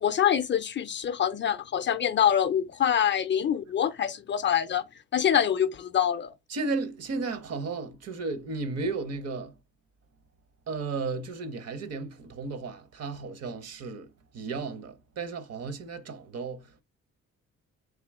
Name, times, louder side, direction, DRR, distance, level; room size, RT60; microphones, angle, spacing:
voice 1, 0.0-4.8 5.1-6.3, left 9 dB, 40° left, 0.4 m, -25 dB
voice 2, 6.5-9.5 10.7-14.1 14.3-16.6, right 3 dB, 55° right, 0.8 m, -34 dB
3.6 x 2.9 x 3.4 m
cardioid pair, 90°, 30 cm